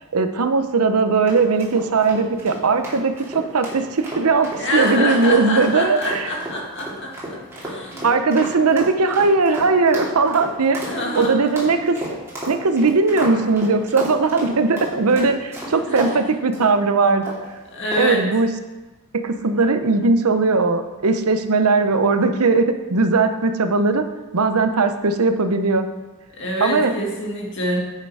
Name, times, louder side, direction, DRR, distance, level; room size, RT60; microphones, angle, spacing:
voice 1, 0.1-6.3 8.0-10.8 11.1-12.0 12.5-17.3 18.0-18.5 19.1-24.0 24.3-25.9 26.6-26.9, right 4 dB, 85° right, 8 dB, 0.8 m, -19 dB
sound 1, 1.3-16.1 16.5-16.7 17.2-17.5 17.9-18.2, right 1 dB, 10° right, 2.6 m, -32 dB
voice 2, 4.6-8.0 10.8-11.4 15.9-16.2 17.7-18.2 26.4-27.8, left 1 dB, 55° left, -2 dB, 2.2 m, -26 dB
9.6 x 6.7 x 4.8 m, 1.1 s
head